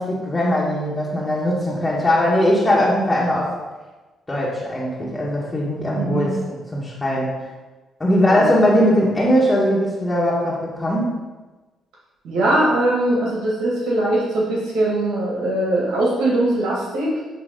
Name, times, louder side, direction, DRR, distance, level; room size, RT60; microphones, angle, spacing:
voice 1, 0.0-3.5 4.3-7.5 8.0-11.1, equal, 20° left, -6 dB, 1.5 m, -20 dB
voice 2, 5.9-6.3 8.3-8.5 12.2-17.1, right 1 dB, 85° right, -5 dB, 1.9 m, -21 dB
8.8 x 3.3 x 5.2 m, 1.2 s
cardioid pair, 90°, 0 cm